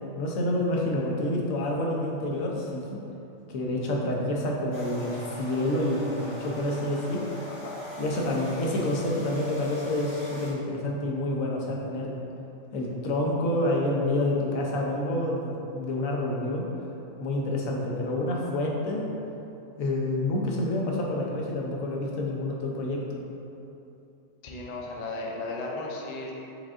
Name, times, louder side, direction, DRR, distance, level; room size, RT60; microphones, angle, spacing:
voice 1, 0.2-3.0 3.5-7.2 8.0-12.1 12.7-16.7 17.2-19.1 19.8-23.1, left 1 dB, 90° left, -2 dB, 1.1 m, -28 dB
sound 1, 4.7-10.5, equal, 25° left, 0.8 m, -40 dB
voice 2, 7.5-7.8 24.4-26.3, left 2 dB, 70° left, -1 dB, 0.4 m, -35 dB
5.0 x 3.6 x 2.4 m, 2.9 s
omnidirectional pair, 1.4 m